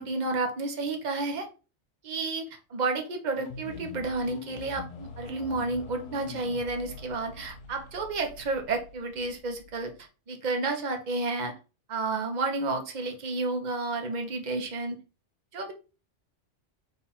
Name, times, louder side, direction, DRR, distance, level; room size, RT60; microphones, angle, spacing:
voice 1, 0.0-1.5 2.0-9.9 10.3-11.5 11.9-15.0 15.5-15.7, right 3 dB, 40° right, 4 dB, 0.8 m, -31 dB
sound 1, 3.3-10.0, left 4 dB, 75° left, 0.9 m, -44 dB
3.9 x 2.4 x 4.2 m, 0.33 s
omnidirectional pair, 1.3 m